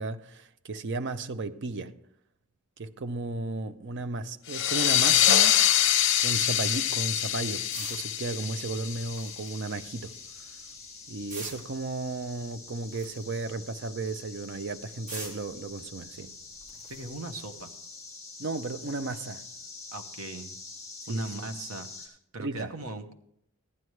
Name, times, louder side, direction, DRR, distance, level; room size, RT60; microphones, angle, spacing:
voice 1, 0.0-1.9 2.8-5.7 6.2-10.1 11.1-16.3 18.4-19.5 21.1-21.5 22.4-22.7, right 3 dB, 55° right, 0.6 m, -34 dB
sound 1, 4.5-9.8, left 11 dB, 60° left, 0.6 m, -25 dB
sound 2, 5.2-22.1, left 4 dB, 15° left, 2.3 m, -46 dB
sound 3, 5.5-17.6, right 2 dB, 35° right, 2.2 m, -49 dB
voice 2, 16.7-17.7 19.9-20.5 21.1-23.1, right 2 dB, 80° right, 1.0 m, -39 dB
14.5 x 11.0 x 3.2 m
head